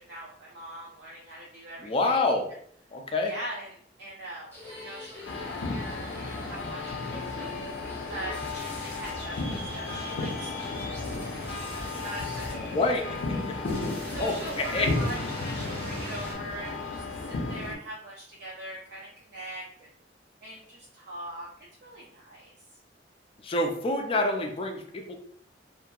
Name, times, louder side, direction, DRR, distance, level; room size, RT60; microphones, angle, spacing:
voice 1, 0.0-2.4 3.2-7.5 8.1-9.4 9.7-12.9 13.1-13.2 13.5-13.6 14.1-19.7 20.4-21.5 21.8-22.5, right 1 dB, 65° right, -4 dB, 0.5 m, -42 dB
voice 2, 1.8-2.5 2.9-3.3 12.7-13.2 13.5-13.6 14.2-14.9 23.4-25.2, left 2 dB, 30° left, 3 dB, 0.4 m, -27 dB
sound 1, 4.5-16.3, equal, 10° left, 0.8 m, -41 dB
sound 2, 5.2-17.7, left 3 dB, 85° left, 0.5 m, -34 dB
2.7 x 2.4 x 2.3 m, 0.62 s
head